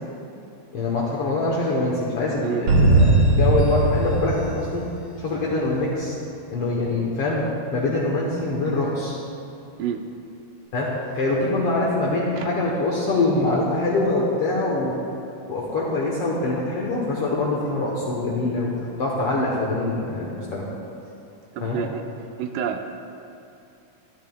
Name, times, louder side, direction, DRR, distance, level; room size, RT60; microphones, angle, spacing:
voice 1, 0.7-4.8 5.2-6.2 6.5-9.2 10.7-15.0 15.5-18.7 19.0-20.7 21.6-21.8, left 2 dB, 65° left, -4 dB, 1.5 m, -24 dB
sound 1, 2.7-5.4, right 2 dB, 60° right, 2.1 m, -19 dB
voice 2, 21.5-22.0 22.4-22.9, right 8 dB, 80° right, 6 dB, 2.0 m, -28 dB
12.5 x 12.5 x 2.3 m, 2.7 s
omnidirectional pair, 3.8 m